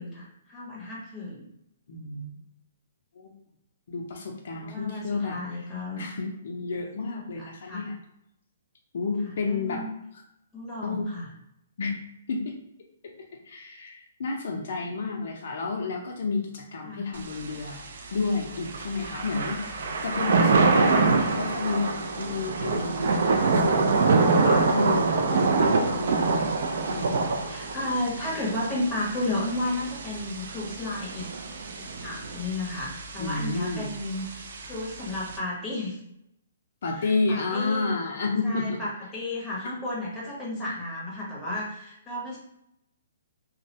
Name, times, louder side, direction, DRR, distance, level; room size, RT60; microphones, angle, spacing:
voice 1, 0.0-1.5 4.6-6.0 7.3-7.9 9.2-9.9 10.5-11.3 16.8-17.1 20.7-21.2 27.5-31.3 31.8-36.0 37.0-37.9 38.4-42.4, left 2 dB, 10° left, -6 dB, 0.7 m, -33 dB
voice 2, 1.9-2.4 3.2-3.3 3.9-5.4 6.0-7.9 8.9-9.8 10.8-11.1 11.8-12.0 12.3-12.6 13.0-13.1 13.4-17.8 18.1-23.2 23.5-26.3 26.8-27.3 33.2-33.9 36.8-38.8, left 3 dB, 60° left, 0 dB, 0.4 m, -31 dB
Thunder / Rain, 17.2-35.4, right 3 dB, 60° right, 0.3 m, -26 dB
2.2 x 2.0 x 2.7 m, 0.80 s
hypercardioid pair, 160°, 0 cm